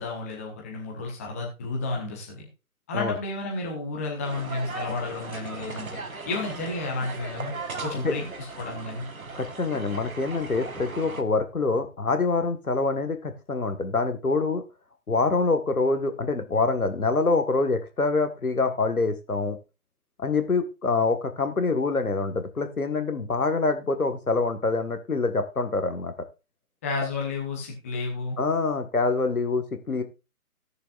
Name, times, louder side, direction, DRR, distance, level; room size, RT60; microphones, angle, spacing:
voice 1, 0.0-2.5 2.9-6.0 6.3-7.5 7.8-9.0 26.8-28.4, left 3 dB, 10° left, -1 dB, 0.9 m, -32 dB
sound 1, 4.2-11.2, right 4 dB, 65° right, 1.4 m, -38 dB
voice 2, 9.4-14.6 15.1-19.6 20.2-26.1 28.4-30.0, left 3 dB, 70° left, 7 dB, 1.6 m, -25 dB
18.0 x 6.8 x 2.4 m, 0.28 s
figure-of-eight pair, 145°, 45 cm